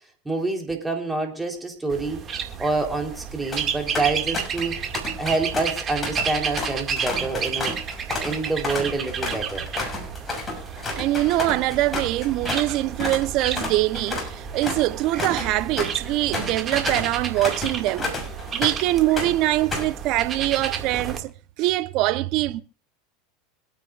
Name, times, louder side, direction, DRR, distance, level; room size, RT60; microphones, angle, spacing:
voice 1, 0.3-2.2 2.6-4.8 5.2-7.8 8.2-9.7, right 3 dB, 10° right, 3.5 m, -27 dB
sound 1, 1.9-21.2, right 7 dB, 35° right, 2.0 m, -32 dB
sound 2, 3.3-3.7 4.0-4.7 4.9-12.7 13.0-13.2 13.5-18.9 19.2-20.0, left 2 dB, 20° left, 6.4 m, -31 dB
voice 2, 10.9-18.1 18.5-21.3 21.6-22.6, right 16 dB, 55° right, 0.8 m, -23 dB
25.5 x 9.1 x 2.5 m
hypercardioid pair, 95°, 0 cm